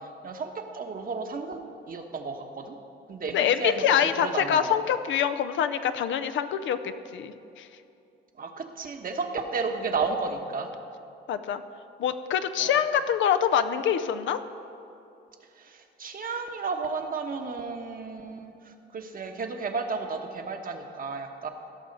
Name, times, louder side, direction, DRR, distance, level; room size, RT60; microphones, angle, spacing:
voice 1, 0.2-1.6 1.9-2.7 3.1-3.8 4.2-4.8 8.4-10.7 12.6-12.8 15.6-21.5, right 4 dB, 45° right, 4 dB, 1.2 m, -33 dB
voice 2, 3.3-7.7 11.3-11.6 12.0-14.4, left 9 dB, 75° left, 10 dB, 0.6 m, -25 dB
16.5 x 6.3 x 5.3 m, 2.7 s
cardioid pair, 90°, 20 cm